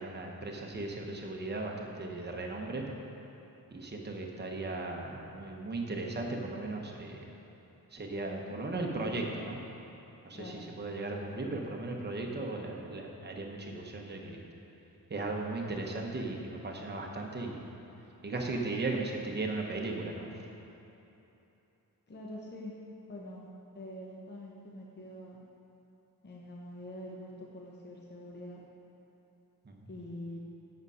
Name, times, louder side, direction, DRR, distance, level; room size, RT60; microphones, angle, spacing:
voice 1, 0.0-2.8 3.7-7.3 7.9-9.6 10.2-14.4 15.1-17.7 18.2-20.3 29.6-29.9, right 2 dB, 30° right, 0 dB, 0.8 m, -37 dB
voice 2, 22.1-22.7 23.1-23.5 23.7-25.4 26.2-28.6 29.9-30.4, left 1 dB, 30° left, -3 dB, 0.8 m, -45 dB
8.0 x 6.2 x 5.4 m, 3.0 s
wide cardioid pair, 165°, 37 cm